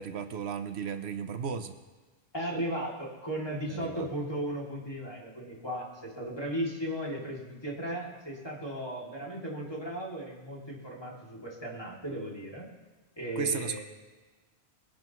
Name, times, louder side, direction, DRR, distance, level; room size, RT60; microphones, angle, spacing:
voice 1, 0.0-1.7 3.7-4.1 13.4-13.8, right 6 dB, 75° right, 8 dB, 1.0 m, -34 dB
voice 2, 2.3-12.7 13.2-13.8, right 1 dB, 20° left, -4 dB, 2.7 m, -36 dB
21.5 x 11.5 x 3.1 m, 1.3 s
omnidirectional pair, 1.1 m